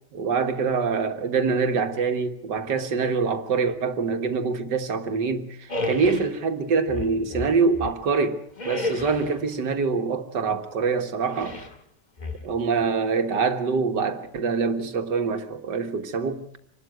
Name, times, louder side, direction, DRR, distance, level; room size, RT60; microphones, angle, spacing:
voice 1, 0.1-8.4 8.7-11.6 12.4-16.4, right 5 dB, 75° right, 2.1 m, -25 dB
sound 1, 5.7-6.3 6.9-8.1 8.6-9.4 11.3-11.8 12.2-12.8, left 2 dB, 25° left, 1.8 m, -32 dB
26.0 x 12.5 x 9.4 m
omnidirectional pair, 1.9 m